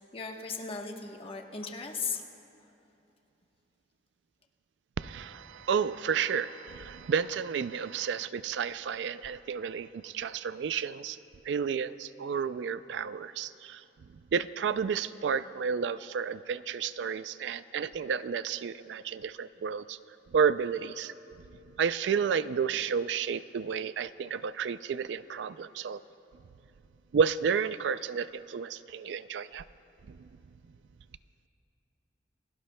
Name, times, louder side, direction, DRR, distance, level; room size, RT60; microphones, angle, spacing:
voice 1, 0.0-2.3, left 5 dB, 35° left, 2 dB, 1.1 m, -37 dB
voice 2, 5.0-11.2 11.5-13.8 14.3-20.0 20.3-21.1 21.8-26.0 27.1-29.6, right 6 dB, 75° right, 15 dB, 0.3 m, -31 dB
28.0 x 17.0 x 2.2 m, 3.0 s
head